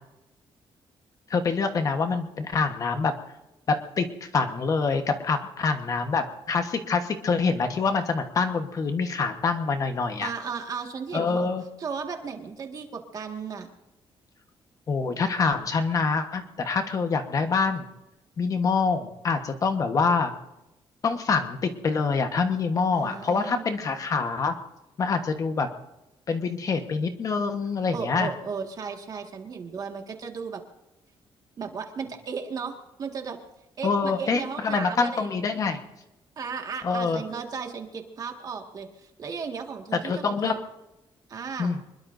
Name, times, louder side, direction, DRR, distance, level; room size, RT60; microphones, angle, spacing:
voice 1, 1.3-3.1 3.7-4.1 4.3-10.3 11.1-11.6 14.9-17.8 18.4-20.3 21.0-24.5 25.0-25.7 26.3-28.3 33.8-35.8 36.8-37.2 40.0-40.5 41.6-41.8, left 4 dB, 40° left, 6 dB, 1.2 m, -25 dB
voice 2, 10.2-11.5 11.8-13.7 22.9-23.6 27.9-30.6 31.6-33.4 33.8-35.3 36.4-40.6 41.3-41.8, right 5 dB, 40° right, 4 dB, 1.8 m, -35 dB
25.0 x 21.5 x 2.7 m, 0.97 s
cardioid pair, 160°, 9 cm